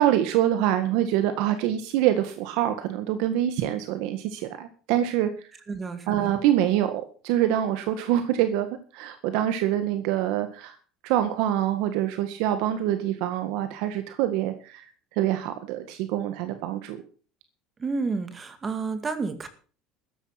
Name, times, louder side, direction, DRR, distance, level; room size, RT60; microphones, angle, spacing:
voice 1, 0.0-5.3 6.1-8.7 8.9-10.8 11.0-14.9 15.1-17.0, right 12 dB, 70° right, 9 dB, 1.7 m, -25 dB
voice 2, 5.7-6.4 17.8-19.5, right 4 dB, 20° right, 10 dB, 2.0 m, -30 dB
14.0 x 10.5 x 6.0 m, 0.40 s
cardioid pair, 155°, 0 cm